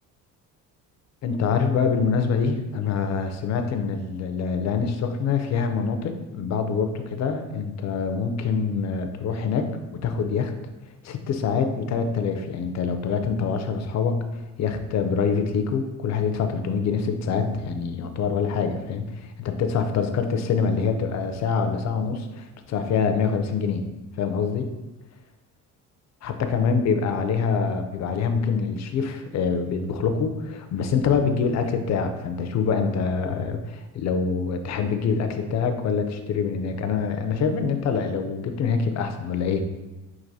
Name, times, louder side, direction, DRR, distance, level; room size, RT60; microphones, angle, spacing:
voice 1, 1.2-9.7 10.0-10.5 11.0-14.3 14.6-23.9 24.2-24.7 26.2-39.6, left 5 dB, 50° left, 7 dB, 0.5 m, -25 dB
5.9 x 2.5 x 2.7 m, 1.1 s
cardioid pair, 120°, 36 cm